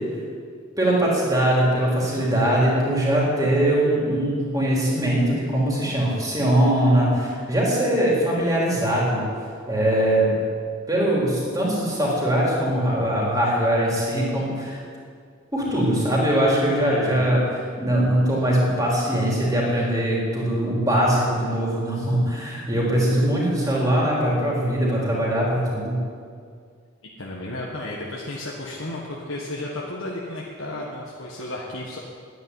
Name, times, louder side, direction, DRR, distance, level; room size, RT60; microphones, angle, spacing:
voice 1, 0.8-9.2 9.7-10.3 10.9-14.8 15.5-17.4 17.8-26.0, right 1 dB, 15° right, -5 dB, 3.7 m, -21 dB
voice 2, 16.9-17.4 27.2-32.0, left 1 dB, 70° left, -3 dB, 1.6 m, -33 dB
11.5 x 9.5 x 9.8 m, 2.2 s
head